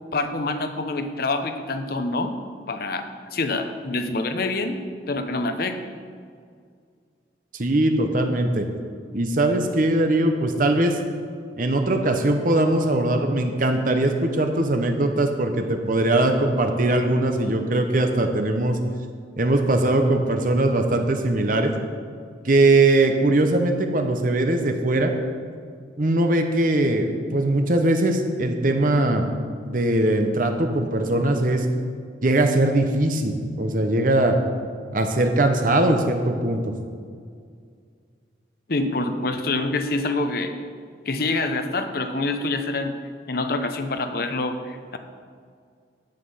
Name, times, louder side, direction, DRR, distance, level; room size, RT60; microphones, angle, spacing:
voice 1, 0.1-2.4 2.7-5.9 38.7-40.5 41.0-42.9 43.3-45.0, left 2 dB, 55° left, 7 dB, 0.8 m, -26 dB
voice 2, 7.5-8.7 9.1-11.0 11.6-18.8 19.4-21.7 22.4-25.1 26.0-29.2 29.6-31.6 32.2-34.4 34.9-36.7, right 2 dB, 45° right, 5 dB, 0.9 m, -21 dB
10.5 x 8.4 x 5.6 m, 2.1 s
head